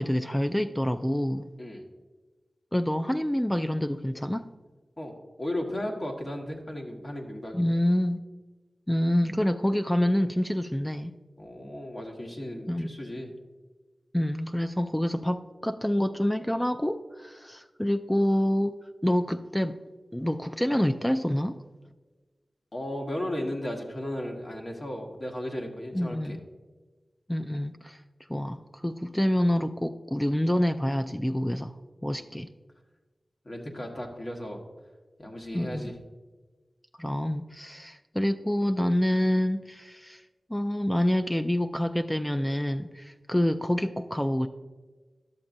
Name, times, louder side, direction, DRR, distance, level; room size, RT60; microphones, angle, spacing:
voice 1, 0.0-1.5 2.7-4.5 7.5-8.2 8.9-11.1 12.7-12.9 14.1-18.7 19.0-19.8 20.1-21.6 25.9-26.4 27.3-28.0 28.3-31.7 32.0-32.5 35.5-35.9 37.0-40.2 40.5-44.5, left 1 dB, 10° left, 7 dB, 0.3 m, -27 dB
voice 2, 5.4-7.7 11.4-13.3 22.7-26.4 32.2-32.3 33.4-34.6 35.2-36.0, left 1 dB, 40° left, 0 dB, 1.4 m, -35 dB
11.5 x 7.1 x 2.6 m, 1.3 s
wide cardioid pair, 75°, 0 cm